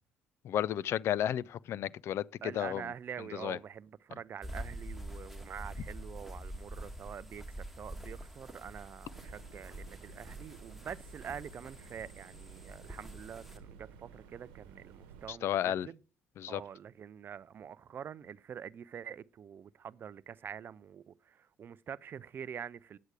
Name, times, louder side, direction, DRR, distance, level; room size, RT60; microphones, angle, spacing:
voice 1, 0.4-2.2 2.5-2.8 3.3-3.6 15.3-15.9 16.4-16.6, left 11 dB, 60° left, 0.4 m, -32 dB
voice 2, 2.4-16.0 16.5-23.0, right 8 dB, 45° right, 0.5 m, -46 dB
sound 1, 4.4-13.6, right 1 dB, 5° right, 1.9 m, -46 dB
sound 2, 9.1-15.4, right 7 dB, 85° right, 1.0 m, -54 dB
9.5 x 8.0 x 4.8 m
hypercardioid pair, 60°, 5 cm